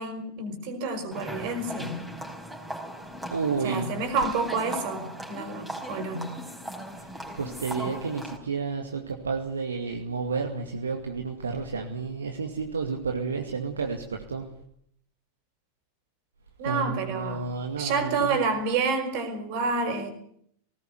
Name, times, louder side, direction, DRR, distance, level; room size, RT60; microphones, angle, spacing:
voice 1, 0.0-2.0 3.6-6.3 16.6-17.5 17.8-20.1, right 4 dB, 45° right, 9 dB, 5.5 m, -29 dB
sound 1, 1.1-8.4, equal, 5° right, 4.8 m, -38 dB
voice 2, 3.3-3.9 7.0-14.5 16.6-18.4, right 5 dB, 70° right, 3 dB, 2.3 m, -31 dB
19.5 x 19.0 x 9.5 m, 0.68 s
figure-of-eight pair, 90°, 0 cm